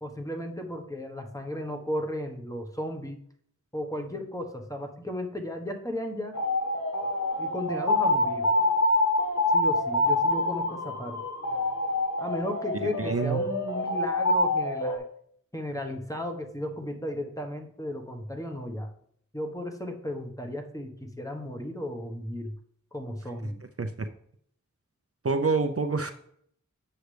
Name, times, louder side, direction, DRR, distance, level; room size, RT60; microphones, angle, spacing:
voice 1, 0.0-3.2 3.7-6.3 7.4-8.5 9.5-11.2 12.2-15.1 15.5-18.9 19.3-22.5 22.9-23.6, left 1 dB, 10° left, 4 dB, 1.1 m, -35 dB
sound 1, 6.3-15.0, left 1 dB, 65° left, 1.6 m, -26 dB
voice 2, 13.0-13.4 23.8-23.9 25.2-26.1, right 4 dB, 50° right, 7 dB, 0.6 m, -26 dB
8.0 x 6.4 x 3.3 m, 0.65 s
wide cardioid pair, 40°, 31 cm